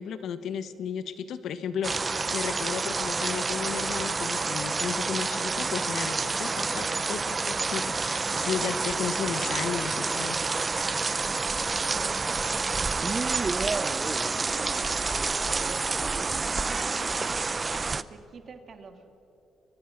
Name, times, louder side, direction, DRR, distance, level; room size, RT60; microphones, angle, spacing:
voice 1, 0.0-10.4, left 7 dB, 70° left, 11 dB, 1.4 m, -34 dB
sound 1, 1.8-18.0, right 4 dB, 30° right, 0.7 m, -28 dB
voice 2, 11.8-12.8 13.7-14.1 14.5-19.0, right 5 dB, 50° right, 6 dB, 2.5 m, -45 dB
30.0 x 24.0 x 6.0 m, 2.9 s
cardioid pair, 90°, 0 cm